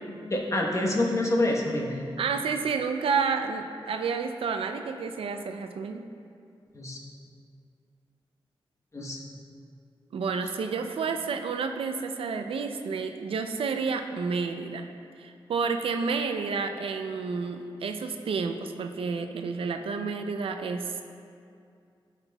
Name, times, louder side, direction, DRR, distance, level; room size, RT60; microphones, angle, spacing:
voice 1, 0.3-2.0 6.7-7.0 8.9-9.2, left 1 dB, 35° left, -1 dB, 1.0 m, -26 dB
voice 2, 2.2-6.1 10.1-14.9 15.2-21.0, right 5 dB, 85° right, 6 dB, 0.4 m, -30 dB
12.5 x 5.8 x 2.3 m, 2.4 s
wide cardioid pair, 100°, 9 cm